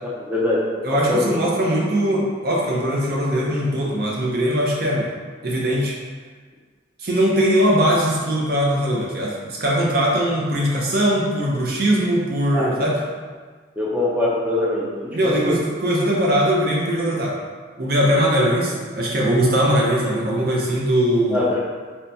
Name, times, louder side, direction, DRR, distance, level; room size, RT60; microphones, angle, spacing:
voice 1, 0.0-1.4 12.5-12.9 13.8-15.6 21.3-21.6, left 2 dB, 10° right, -7 dB, 0.4 m, -23 dB
voice 2, 0.8-5.1 5.4-5.9 7.0-13.0 15.1-17.3 17.8-21.5, equal, 50° right, -4 dB, 0.7 m, -20 dB
2.9 x 2.3 x 3.9 m, 1.5 s
head